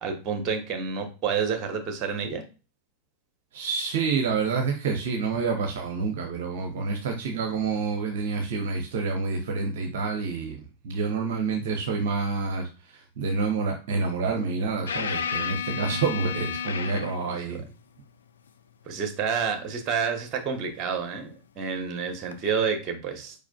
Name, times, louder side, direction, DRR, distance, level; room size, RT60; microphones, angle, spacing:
voice 1, 0.0-2.4 18.9-23.3, right 6 dB, 30° right, 6 dB, 1.1 m, -29 dB
voice 2, 3.5-10.6 10.8-17.7, right 4 dB, 55° right, 3 dB, 0.8 m, -28 dB
sound 1, 14.9-17.4 20.4-20.5 22.3-22.4, left 7 dB, 65° left, 0.5 m, -31 dB
4.8 x 4.8 x 2.3 m, 0.32 s
figure-of-eight pair, 90°, 0 cm